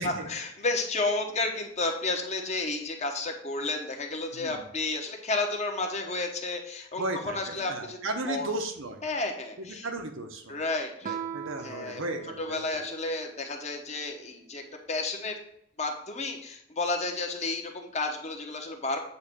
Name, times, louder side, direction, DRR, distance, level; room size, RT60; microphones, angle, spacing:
voice 1, 0.0-8.0 8.3-8.5 9.0-9.9 10.5-11.2 11.6-12.0 12.4-15.4 15.8-19.0, left 3 dB, 35° left, 3 dB, 1.1 m, -32 dB
voice 2, 4.3-4.7 7.0-9.0 9.6-10.6 11.3-12.6, right 2 dB, 85° right, 5 dB, 1.1 m, -35 dB
Guitar, 11.0-13.5, right 8 dB, 40° right, 0.4 m, -40 dB
8.4 x 3.2 x 6.2 m, 0.71 s
head